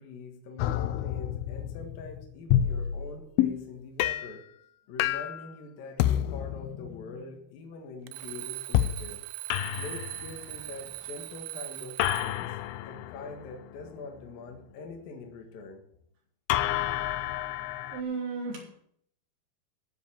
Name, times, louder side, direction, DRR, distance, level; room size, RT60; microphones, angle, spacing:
voice 1, 0.0-4.4 4.9-9.2 9.7-15.8, left 3 dB, 60° left, 2 dB, 3.1 m, -44 dB
sound 1, 0.6-3.7 4.0-4.4 5.0-5.5 6.0-7.2 8.7-9.1 9.5-10.7 12.0-14.3 16.5-18.0, left 12 dB, 85° left, 2.2 m, -29 dB
Alarm, 8.1-12.5, right 17 dB, 85° right, 2.8 m, -40 dB
voice 2, 17.5-18.8, right 4 dB, 65° right, -2 dB, 5.7 m, -36 dB
15.0 x 5.4 x 8.7 m, 0.66 s
omnidirectional pair, 5.0 m